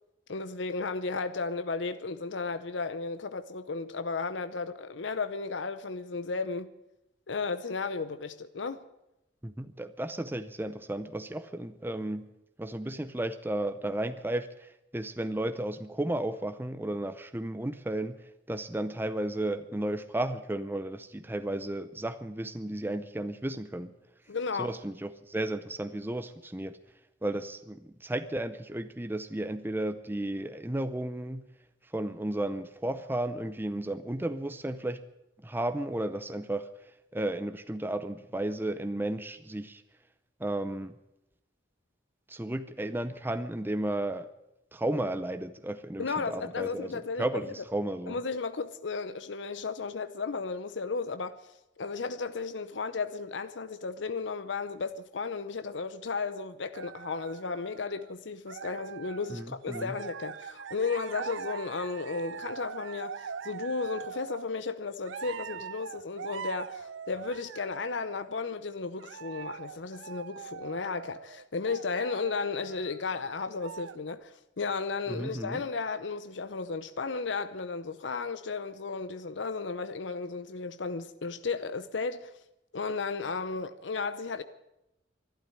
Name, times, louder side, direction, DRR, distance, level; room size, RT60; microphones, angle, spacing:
voice 1, 0.3-6.7 7.3-8.8 24.3-24.7 46.0-47.4 48.1-51.4 51.8-82.3 82.7-84.4, left 4 dB, 70° left, 0.7 m, -34 dB
voice 2, 9.4-12.3 12.6-18.2 18.5-23.9 24.6-26.8 27.2-31.4 31.9-35.0 35.4-36.7 37.1-39.8 40.4-40.9 42.3-44.3 44.7-46.9 47.2-48.2 59.3-59.9 75.1-75.6, right 1 dB, 10° right, 0.6 m, -33 dB
sound 1, 56.7-58.1 58.5-59.4 59.7-64.5 65.1-68.4 69.0-73.1 73.4-74.1, right 7 dB, 85° right, 0.5 m, -42 dB
12.5 x 11.5 x 9.8 m
head